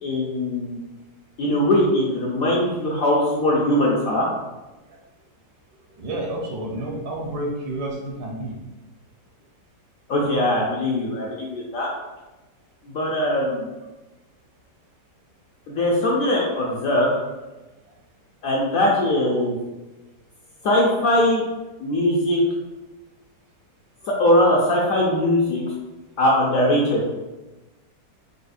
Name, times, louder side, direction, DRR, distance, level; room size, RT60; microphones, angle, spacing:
voice 1, 0.0-0.8 1.4-4.3 10.1-11.9 12.8-13.7 15.7-17.1 18.4-19.6 20.6-21.4 21.8-22.4 24.2-25.6 26.2-27.0, left 1 dB, 70° left, -3 dB, 0.8 m, -21 dB
voice 2, 6.0-8.6 24.9-25.1, right 1 dB, 70° right, -1 dB, 1.2 m, -30 dB
4.8 x 2.0 x 2.4 m, 1.1 s
omnidirectional pair, 1.9 m